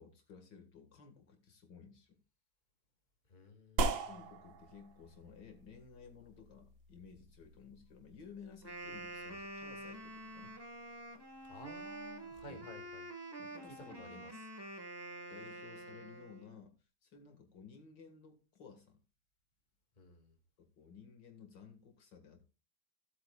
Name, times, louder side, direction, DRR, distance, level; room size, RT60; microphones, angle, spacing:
voice 1, 0.0-2.2 4.0-10.6 12.5-12.7 13.4-14.4 15.3-16.7 17.0-19.0 20.6-22.5, left 6 dB, 65° left, 5 dB, 2.2 m, -56 dB
voice 2, 3.3-4.1 11.5-13.0 13.7-14.3 20.0-20.4, left 2 dB, 25° left, 4 dB, 2.0 m, -54 dB
sound 1, 3.8-12.5, right 3 dB, 75° right, 1.9 m, -43 dB
Wind instrument woodwind instrument, 8.5-16.6, right 2 dB, 15° right, 1.2 m, -47 dB
16.0 x 8.2 x 2.3 m, 0.30 s
omnidirectional pair, 2.1 m